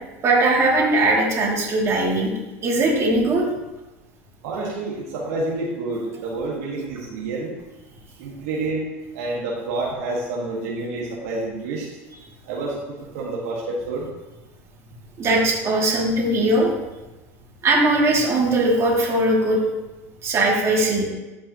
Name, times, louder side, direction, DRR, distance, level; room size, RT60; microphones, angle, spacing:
voice 1, 0.2-2.3 2.6-3.5 15.2-16.7 17.6-19.6 20.2-21.0, right 2 dB, 40° right, -3 dB, 2.8 m, -19 dB
voice 2, 4.4-7.5 8.2-8.8 9.1-11.8 12.5-14.1, right 2 dB, 80° right, -4 dB, 1.8 m, -28 dB
13.0 x 5.4 x 3.1 m, 1.1 s
supercardioid pair, 95°, 7 cm